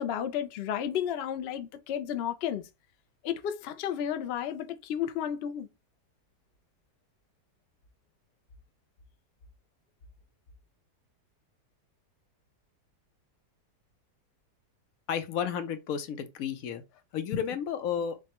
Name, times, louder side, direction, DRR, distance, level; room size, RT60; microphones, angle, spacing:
voice 1, 0.0-2.7 3.2-5.7, left 9 dB, 85° left, 0.5 m, -32 dB
voice 2, 15.1-16.8 17.1-18.2, left 8 dB, 65° left, 1.0 m, -32 dB
6.4 x 2.1 x 2.9 m
omnidirectional pair, 1.7 m